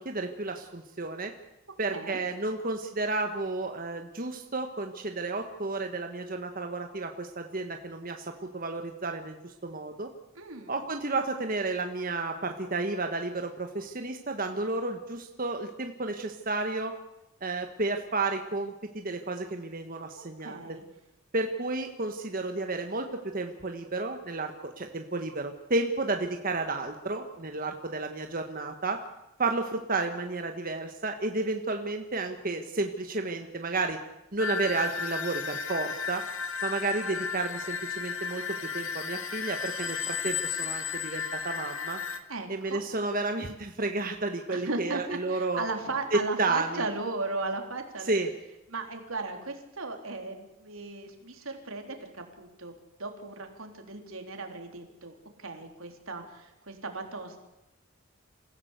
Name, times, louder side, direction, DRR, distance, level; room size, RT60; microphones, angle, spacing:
voice 1, 0.0-1.3 1.8-10.1 10.7-16.9 17.4-20.6 21.3-23.1 23.3-29.0 29.4-34.0 34.3-36.2 36.6-42.0 42.5-45.6 46.1-46.8 48.0-48.3, right 3 dB, 40° right, 5 dB, 1.4 m, -32 dB
voice 2, 10.4-10.7 20.4-20.8 42.3-42.8 44.5-45.0 45.3-48.1 48.7-52.7 53.0-57.4, right 3 dB, 80° right, 4 dB, 3.6 m, -36 dB
sound 1, 34.4-42.2, left 6 dB, 85° left, 2.1 m, -34 dB
27.5 x 16.0 x 8.2 m, 0.92 s
head